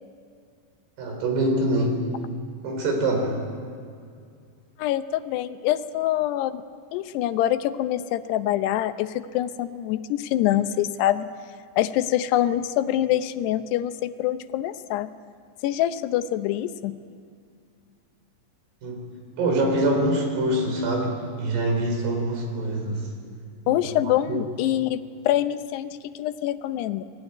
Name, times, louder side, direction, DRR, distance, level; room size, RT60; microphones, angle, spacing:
voice 1, 1.0-2.0 2.6-3.4 18.8-19.1 19.4-23.1 23.6-24.4, right 1 dB, 75° right, 3 dB, 6.3 m, -25 dB
voice 2, 4.8-6.6 6.9-11.3 11.8-15.1 15.6-17.0 23.7-27.0, left 12 dB, 80° left, 10 dB, 2.9 m, -25 dB
29.0 x 20.0 x 9.4 m, 2.3 s
omnidirectional pair, 4.8 m